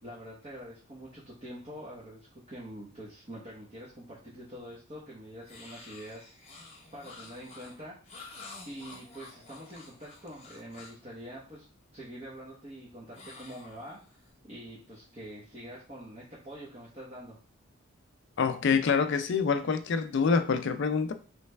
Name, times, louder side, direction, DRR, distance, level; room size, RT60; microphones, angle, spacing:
voice 1, 0.0-6.3 6.9-8.0 8.7-11.6 11.9-14.0 14.4-17.4, equal, 30° right, -8 dB, 1.0 m, -45 dB
sound 1, 5.4-11.1 13.1-14.3, left 3 dB, 30° left, 0.9 m, -50 dB
voice 2, 18.4-21.1, left 5 dB, 55° left, 9 dB, 0.4 m, -26 dB
3.2 x 3.2 x 3.3 m, 0.37 s
head